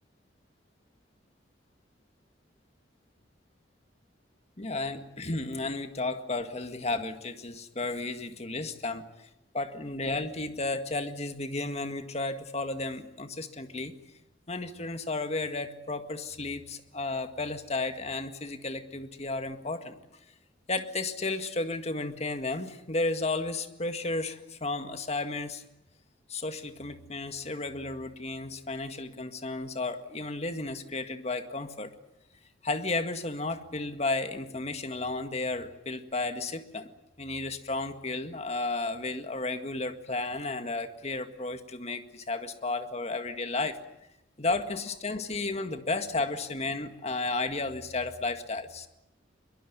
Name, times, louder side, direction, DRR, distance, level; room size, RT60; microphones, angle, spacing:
voice 1, 4.6-9.3 9.5-14.0 14.5-20.0 20.7-25.6 26.3-31.9 32.6-36.9 37.2-43.8 44.4-48.9, left 2 dB, 35° left, 8 dB, 1.9 m, -33 dB
22.5 x 22.5 x 9.5 m, 0.86 s
head